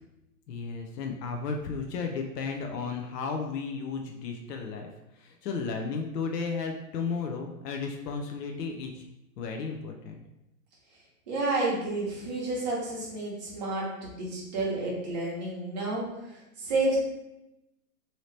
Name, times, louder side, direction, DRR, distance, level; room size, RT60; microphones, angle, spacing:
voice 1, 0.5-4.9 5.1-9.1 9.4-10.2, left 5 dB, 80° left, 3 dB, 0.6 m, -34 dB
voice 2, 11.3-16.0 16.6-17.0, right 2 dB, 25° right, -5 dB, 0.7 m, -30 dB
2.8 x 2.8 x 3.1 m, 0.92 s
hypercardioid pair, 165°, 47 cm